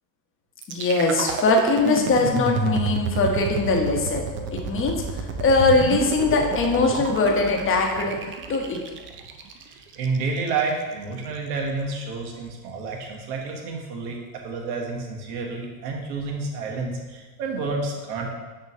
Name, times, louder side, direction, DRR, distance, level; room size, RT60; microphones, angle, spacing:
sound 1, 0.6-10.6, right 5 dB, 25° right, 0.4 m, -30 dB
voice 1, 0.7-5.0 5.4-8.2 8.5-8.8, left 3 dB, 25° left, 2 dB, 1.0 m, -21 dB
voice 2, 9.6-18.3, right 4 dB, 75° right, 0 dB, 1.5 m, -30 dB
6.5 x 3.1 x 5.3 m, 1.3 s
supercardioid pair, 115°, 49 cm